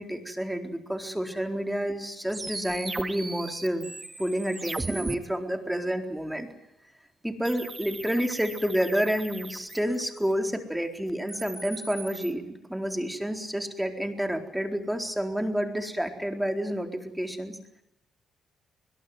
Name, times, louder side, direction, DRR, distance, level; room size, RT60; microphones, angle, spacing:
voice 1, 0.0-3.9 4.2-6.5 7.2-17.6, equal, 5° right, 5 dB, 4.2 m, -29 dB
sound 1, 2.3-5.1 7.4-10.3 11.1-12.3, right 2 dB, 20° right, 2.0 m, -38 dB
22.0 x 21.5 x 9.5 m, 0.84 s
supercardioid pair, 65°, 0 cm